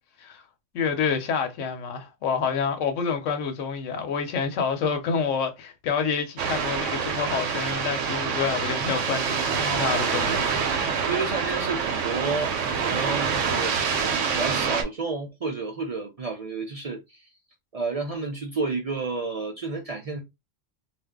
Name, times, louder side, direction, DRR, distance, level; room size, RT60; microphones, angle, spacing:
voice 1, 0.7-10.5, left 6 dB, 80° left, 1.0 m, -28 dB
sound 1, 6.4-14.8, right 6 dB, 80° right, 1.0 m, -26 dB
voice 2, 9.4-10.4 11.1-14.0 14.4-17.3 17.7-20.2, right 4 dB, 60° right, 0.4 m, -31 dB
2.5 x 2.1 x 3.5 m
omnidirectional pair, 1.3 m